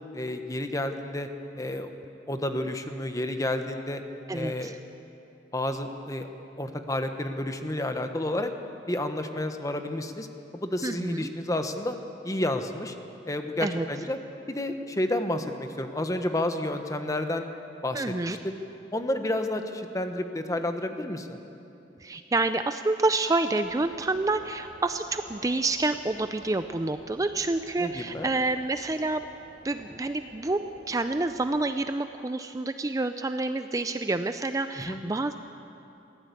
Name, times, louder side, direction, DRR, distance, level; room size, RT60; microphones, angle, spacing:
voice 1, 0.1-1.3 1.5-1.9 2.3-4.0 4.3-4.7 5.5-6.3 6.6-8.5 8.9-10.3 10.5-12.0 12.2-12.9 13.2-14.2 14.5-17.5 17.8-18.5 18.9-21.4 27.8-28.3 34.8-35.0, left 1 dB, 20° left, 6 dB, 1.2 m, -30 dB
voice 2, 4.3-4.8 10.8-11.3 13.6-13.8 17.9-18.4 22.0-29.2 29.6-35.4, right 2 dB, 20° right, 9 dB, 0.4 m, -28 dB
sound 1, 23.6-31.6, right 1 dB, 65° right, 3.9 m, -51 dB
22.0 x 16.0 x 8.3 m, 2.8 s
head